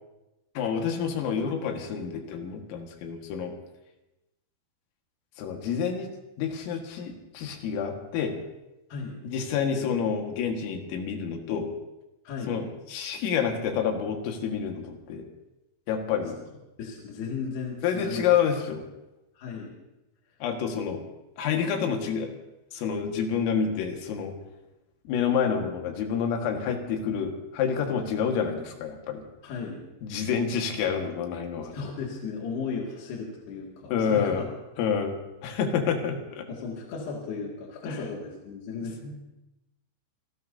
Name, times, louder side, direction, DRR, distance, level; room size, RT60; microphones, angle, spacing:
voice 1, 0.6-3.5 5.4-6.1 6.4-8.4 9.2-11.7 12.5-15.3 15.9-16.4 17.8-18.9 20.4-21.1 21.4-22.3 22.7-24.3 25.1-29.2 30.0-31.8 33.9-34.4 34.8-35.2 35.4-36.5 37.8-38.0, left 7 dB, 85° left, 3 dB, 4.4 m, -28 dB
voice 2, 12.3-12.6 16.8-18.3 19.3-19.7 29.4-29.8 31.7-34.5 36.5-39.2, left 5 dB, 60° left, -3 dB, 4.0 m, -35 dB
27.5 x 19.0 x 2.8 m, 0.98 s
omnidirectional pair, 5.8 m